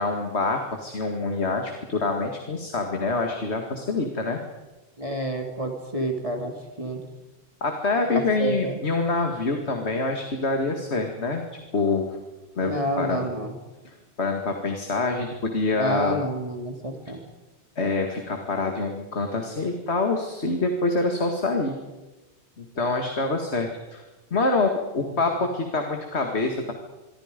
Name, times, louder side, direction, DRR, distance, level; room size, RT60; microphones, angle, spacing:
voice 1, 0.0-4.4 7.6-11.4 11.7-12.2 12.6-13.3 13.8-16.2 17.8-21.8 22.6-24.0 24.3-26.7, left 3 dB, 80° left, 4 dB, 2.4 m, -26 dB
voice 2, 5.0-7.0 8.1-8.8 12.6-13.6 15.8-17.2, right 1 dB, 30° right, 3 dB, 3.0 m, -29 dB
26.5 x 24.0 x 5.3 m, 1.1 s
omnidirectional pair, 1.1 m